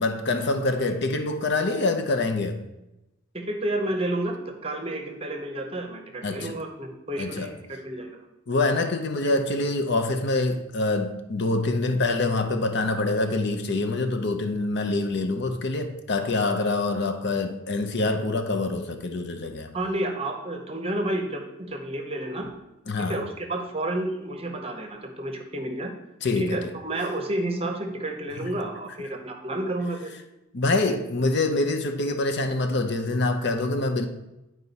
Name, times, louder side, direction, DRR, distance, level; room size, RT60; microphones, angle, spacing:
voice 1, 0.0-2.6 6.2-6.5 7.2-7.5 8.5-19.7 22.9-23.2 26.2-26.6 28.4-28.5 30.5-34.1, left 2 dB, 50° left, 0.6 m, -25 dB
voice 2, 3.3-8.3 19.7-22.6 23.1-25.9 26.4-30.1, right 1 dB, 25° right, 0.8 m, -30 dB
9.6 x 4.8 x 4.1 m
head